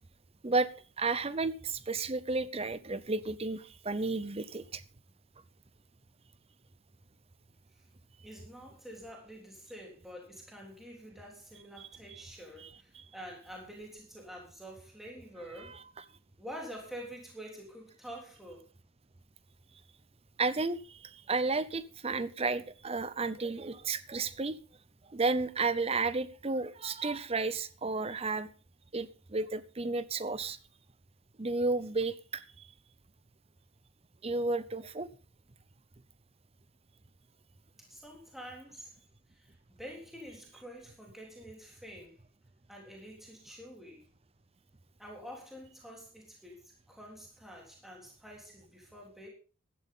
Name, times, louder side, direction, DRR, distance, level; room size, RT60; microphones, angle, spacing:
voice 1, 1.0-4.8 11.8-12.2 12.6-13.0 15.6-15.8 20.4-24.6 25.1-28.5 28.9-30.6 31.4-32.7 34.2-35.1, right 3 dB, 25° right, 16 dB, 0.7 m, -32 dB
voice 2, 8.2-15.8 16.4-18.6 37.8-38.9 39.3-42.2 42.7-44.0 45.0-49.3, equal, ahead, -2 dB, 3.5 m, -47 dB
15.5 x 12.0 x 3.7 m, 0.35 s
head